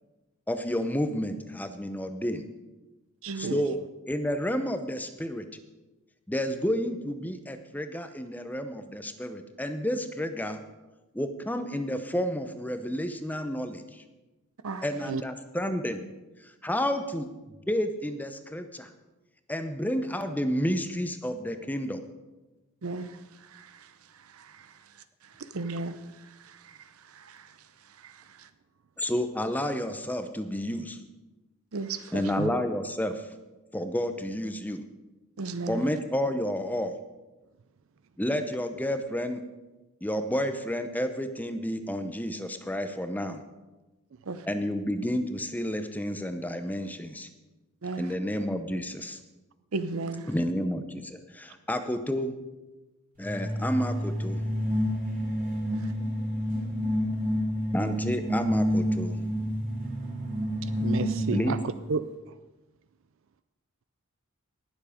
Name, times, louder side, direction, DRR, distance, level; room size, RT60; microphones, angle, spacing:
voice 1, 0.5-2.5 3.3-3.8 4.1-5.4 6.3-10.6 11.1-14.0 14.8-16.0 16.6-17.3 17.7-18.9 19.5-22.0 29.0-31.0 32.1-33.3 33.7-34.8 35.7-37.0 38.2-39.4 40.0-43.4 44.5-47.3 48.0-49.2 50.3-52.4 53.2-54.4 57.7-59.2 61.3-61.6, equal, 10° left, 8 dB, 0.7 m, -30 dB
voice 2, 3.2-3.6 15.1-15.2 32.4-32.5 60.6-61.6 61.9-62.4, right 5 dB, 60° right, 13 dB, 0.4 m, -32 dB
voice 3, 25.5-26.0 31.7-32.2 35.4-35.8 44.3-44.4 47.8-48.1 49.7-50.3, right 3 dB, 80° right, 12 dB, 0.8 m, -33 dB
sound 1, 53.2-61.8, equal, 40° right, 3.4 m, -29 dB
19.0 x 7.3 x 5.1 m, 1.1 s
head